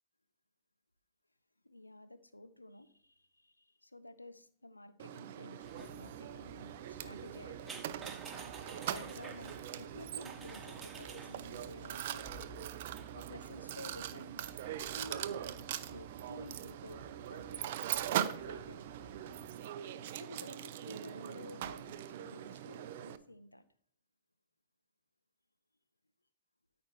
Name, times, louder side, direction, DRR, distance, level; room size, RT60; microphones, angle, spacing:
voice 1, 1.6-7.8 8.8-12.3 13.1-14.5 14.9-17.8 18.1-18.8 20.2-23.6, left 1 dB, 90° left, 12 dB, 0.6 m, -52 dB
Mechanisms, 5.0-23.2, right 11 dB, 55° right, 0.5 m, -41 dB
sound 1, 5.6-19.5, right 3 dB, 15° right, 1.7 m, -54 dB
13.0 x 5.2 x 3.0 m, 0.63 s
figure-of-eight pair, 100°, 0 cm